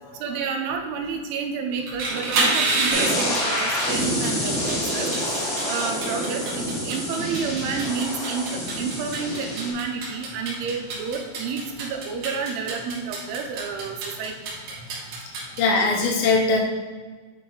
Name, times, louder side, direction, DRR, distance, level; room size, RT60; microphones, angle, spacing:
voice 1, 0.2-5.1 5.7-14.4, right 5 dB, 85° right, 3 dB, 2.7 m, -30 dB
sound 1, 1.8-15.6, right 2 dB, 65° right, 1.8 m, -29 dB
sound 2, 2.9-9.7, equal, 45° left, 1.5 m, -27 dB
voice 2, 15.6-16.6, left 3 dB, 80° left, 0 dB, 2.3 m, -20 dB
9.6 x 4.3 x 3.0 m, 1.4 s
omnidirectional pair, 4.7 m